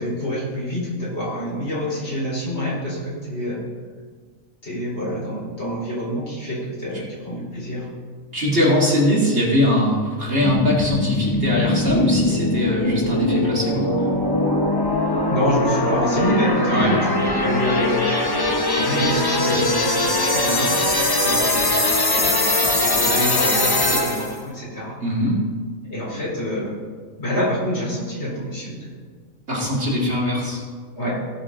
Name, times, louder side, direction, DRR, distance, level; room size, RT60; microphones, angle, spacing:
voice 1, 0.0-3.7 4.6-7.9 15.3-20.8 21.1-22.5 22.8-25.0 25.9-26.8 27.2-29.0 31.0-31.2, equal, 50° left, -6 dB, 4.2 m, -27 dB
voice 2, 8.3-13.9 16.7-17.0 25.0-25.4 29.5-30.6, equal, 50° right, -5 dB, 2.7 m, -21 dB
sound 1, 10.4-24.4, left 2 dB, 20° left, 0.8 m, -21 dB
16.5 x 6.6 x 3.8 m, 1.6 s
omnidirectional pair, 1.4 m